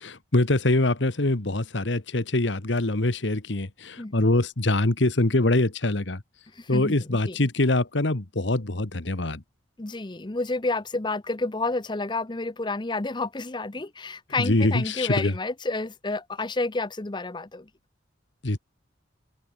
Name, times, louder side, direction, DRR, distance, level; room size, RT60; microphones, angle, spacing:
voice 1, 0.0-6.2 6.7-9.4 14.4-15.3 18.4-18.6, left 2 dB, 70° left, 1.6 m, -24 dB
voice 2, 4.0-4.3 6.6-6.9 7.2-7.4 9.8-17.7, left 3 dB, 25° left, 0.8 m, -30 dB
open air
head